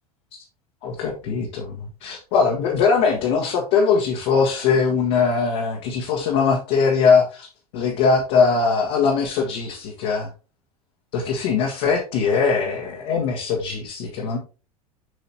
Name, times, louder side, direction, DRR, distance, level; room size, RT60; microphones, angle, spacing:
voice 1, 0.8-7.5 7.7-10.3 11.1-14.4, left 5 dB, 50° left, -1 dB, 1.6 m, -21 dB
7.9 x 5.6 x 2.9 m, 0.33 s
figure-of-eight pair, 80°, 19 cm